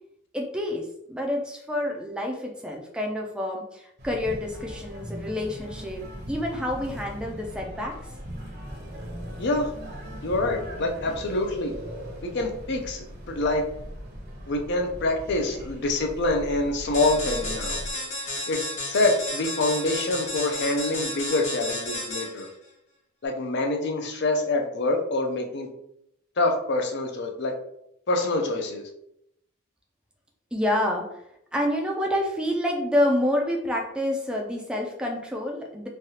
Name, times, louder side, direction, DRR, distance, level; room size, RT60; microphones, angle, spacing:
voice 1, 0.3-6.0 6.3-8.0 30.5-31.0 31.5-35.9, left 1 dB, 5° right, 0 dB, 0.4 m, -28 dB
sound 1, 4.0-17.9, equal, 50° right, 0.8 m, -39 dB
voice 2, 10.2-11.7 12.2-13.6 14.5-17.8 18.5-18.6 18.9-22.5 23.2-25.7 26.4-27.5 28.1-28.8, left 2 dB, 55° left, 3 dB, 0.5 m, -26 dB
sound 2, 16.9-22.5, left 1 dB, 35° left, 1.0 m, -32 dB
3.2 x 2.3 x 2.8 m, 0.77 s
head